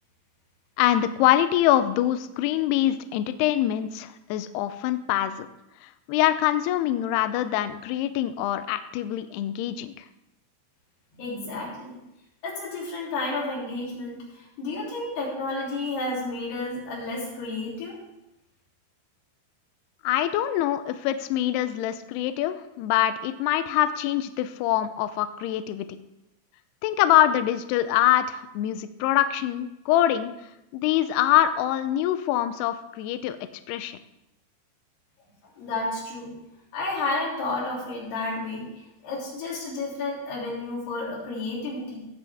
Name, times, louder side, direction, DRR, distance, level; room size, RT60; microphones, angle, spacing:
voice 1, 0.8-5.4 5.8-9.9 20.0-25.9 26.8-30.3 30.7-33.4 33.7-34.0, left 12 dB, 90° left, 11 dB, 2.3 m, -24 dB
voice 2, 11.1-12.0 12.4-18.0 35.6-36.3 36.7-38.7 39.0-42.0, left 2 dB, 65° left, -5 dB, 5.2 m, -31 dB
17.5 x 7.6 x 3.5 m, 0.90 s
omnidirectional pair, 5.3 m